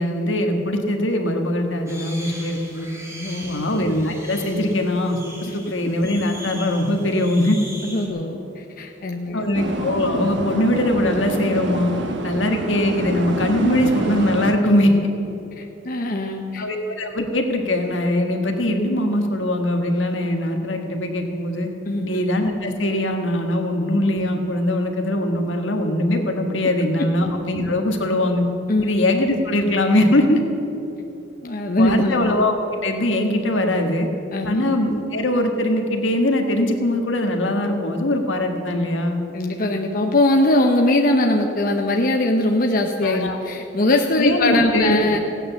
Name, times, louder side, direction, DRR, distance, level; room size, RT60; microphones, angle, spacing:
voice 1, 0.0-2.9 3.5-7.6 9.3-11.9 12.2-14.9 16.6-21.7 22.0-28.4 28.8-30.4 31.8-34.1 34.4-39.2 43.0-43.4 44.2-45.0, left 1 dB, 80° left, 3 dB, 1.6 m, -21 dB
sound 1, 1.9-8.1, right 1 dB, 15° right, 2.2 m, -39 dB
voice 2, 3.1-3.7 5.5-5.6 7.8-9.5 15.6-16.7 21.9-22.1 26.6-26.7 27.0-27.1 28.7-28.9 31.4-32.2 34.3-34.6 39.3-45.2, left 1 dB, 50° left, 2 dB, 0.9 m, -21 dB
sound 2, 9.5-14.6, right 1 dB, 65° right, 1.1 m, -27 dB
16.0 x 9.2 x 7.0 m, 2.9 s
head